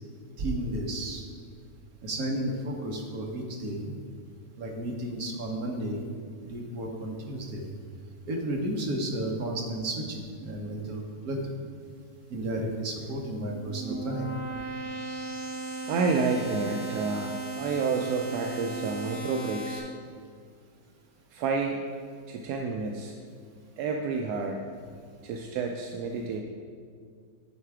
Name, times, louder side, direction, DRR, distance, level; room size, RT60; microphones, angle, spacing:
voice 1, 0.4-1.2 2.0-3.9 4.6-6.0 6.4-7.7 8.3-11.5 12.3-14.3, right 1 dB, 55° right, 1 dB, 1.4 m, -32 dB
sound 1, 13.3-19.8, right 3 dB, 35° left, 1.0 m, -36 dB
voice 2, 15.9-19.9 21.3-21.8 22.3-23.1 23.8-24.6 25.2-26.4, right 4 dB, 70° right, 2 dB, 1.0 m, -30 dB
9.9 x 4.7 x 4.8 m, 2.1 s
omnidirectional pair, 2.0 m